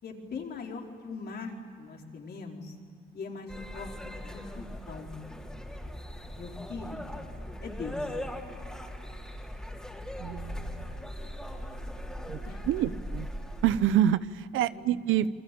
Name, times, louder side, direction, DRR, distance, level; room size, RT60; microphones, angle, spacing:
voice 1, 0.0-1.5 1.8-2.7 3.1-5.1 6.4-7.1 7.6-8.0 11.5-12.0 12.4-13.0 14.7-15.0, left 4 dB, 55° left, 1 dB, 4.8 m, -41 dB
sound 1, 3.5-13.9, equal, 5° left, 4.3 m, -39 dB
voice 2, 10.2-11.1 12.3-12.4 12.6-13.3 13.6-15.3, right 11 dB, 85° right, 15 dB, 0.9 m, -27 dB
28.0 x 23.0 x 8.7 m, 2.2 s
cardioid pair, 90°, 20 cm